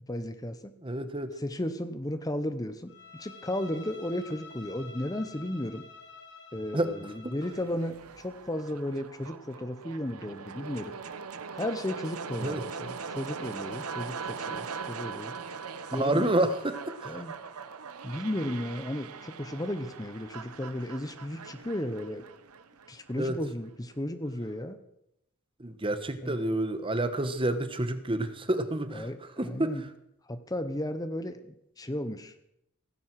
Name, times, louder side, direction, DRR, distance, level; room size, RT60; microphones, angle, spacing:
voice 1, 0.1-0.8 1.4-5.9 6.5-11.0 11.5-15.4 15.9-16.3 17.0-17.3 18.0-22.2 22.9-24.8 26.2-26.4 28.9-29.2 29.4-29.8 30.2-32.4, left 1 dB, 15° left, 10 dB, 0.8 m, -34 dB
voice 2, 0.8-1.4 6.7-7.3 12.4-12.6 15.9-17.2 23.2-23.4 25.6-29.9, right 1 dB, 25° right, 10 dB, 1.2 m, -29 dB
Bowed string instrument, 2.9-7.8, left 5 dB, 55° left, 3.6 m, -49 dB
sound 1, 7.4-23.4, right 5 dB, 85° right, 1.0 m, -41 dB
17.5 x 16.0 x 4.7 m, 0.80 s
head